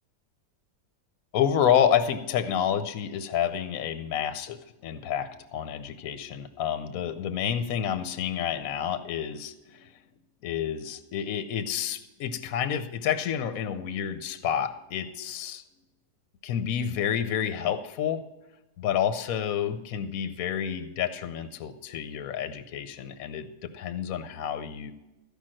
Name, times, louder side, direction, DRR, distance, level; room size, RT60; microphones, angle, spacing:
voice 1, 1.3-9.9 10.4-15.6 16.4-18.2 18.8-24.9, left 9 dB, 65° left, 12 dB, 1.0 m, -29 dB
14.0 x 5.3 x 7.6 m, 1.0 s
omnidirectional pair, 1.8 m